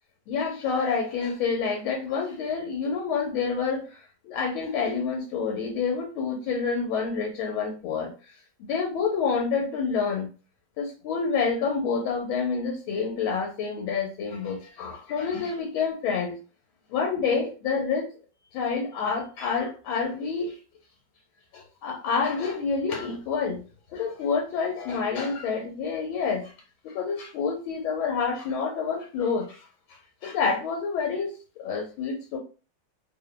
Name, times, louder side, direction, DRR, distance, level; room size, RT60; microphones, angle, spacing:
voice 1, 0.3-8.1 8.7-10.3 10.8-16.4 16.9-18.1 18.5-20.6 21.5-23.6 23.9-26.5 26.8-32.4, left 5 dB, 90° left, 0 dB, 1.4 m, -28 dB
3.3 x 2.0 x 2.2 m, 0.35 s
omnidirectional pair, 2.1 m